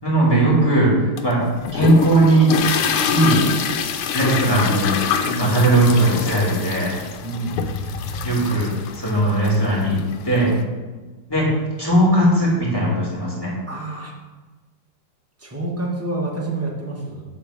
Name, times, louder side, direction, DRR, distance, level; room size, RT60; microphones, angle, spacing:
voice 1, 0.0-1.4 1.7-2.5 3.1-3.4 4.1-5.0 5.4-7.0 8.2-10.0 10.2-10.5 11.3-11.5 11.8-13.5, right 1 dB, 10° left, -6 dB, 2.4 m, -18 dB
sound 1, 1.2-10.6, left 6 dB, 80° left, 1.6 m, -25 dB
voice 2, 7.2-7.6 13.7-14.1 15.4-17.2, right 2 dB, 10° right, -2 dB, 0.8 m, -28 dB
8.7 x 3.8 x 6.5 m, 1.3 s
omnidirectional pair, 2.4 m